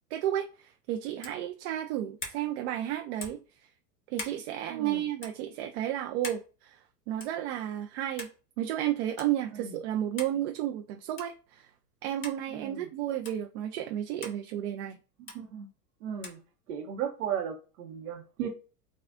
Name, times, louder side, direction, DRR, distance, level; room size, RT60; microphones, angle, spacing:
voice 1, 0.1-3.4 4.1-6.8 7.1-8.3 8.6-11.6 12.0-15.0, right 12 dB, 45° right, 0.5 m, -32 dB
sound 1, 1.2-1.4 2.2-2.4 3.2-3.5 4.1-4.4 5.2-5.4 6.2-6.5 7.2-7.4 8.2-8.4 9.2-9.3 10.2-10.4 11.2-11.4 12.2-12.4 13.2-13.4 14.2-14.4 15.3-15.4 16.2-16.4, left 3 dB, 25° left, 1.4 m, -41 dB
voice 2, 4.7-5.0 9.5-9.7 12.5-12.9 15.2-15.7 16.0-16.4 16.7-18.5, right 8 dB, 60° right, 0.9 m, -36 dB
5.9 x 2.4 x 2.5 m
hypercardioid pair, 105°, 50 cm